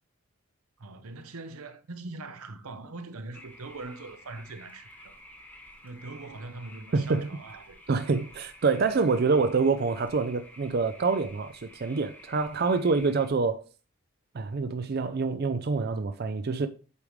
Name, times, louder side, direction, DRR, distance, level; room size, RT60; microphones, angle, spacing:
voice 1, 0.8-5.2 5.8-7.8, right 3 dB, 85° right, 0.8 m, -42 dB
sound 1, 3.3-13.3, left 1 dB, 10° left, 1.1 m, -51 dB
voice 2, 6.9-7.3 7.9-13.7 14.3-16.7, right 4 dB, 45° right, 0.4 m, -26 dB
8.3 x 5.0 x 3.2 m
head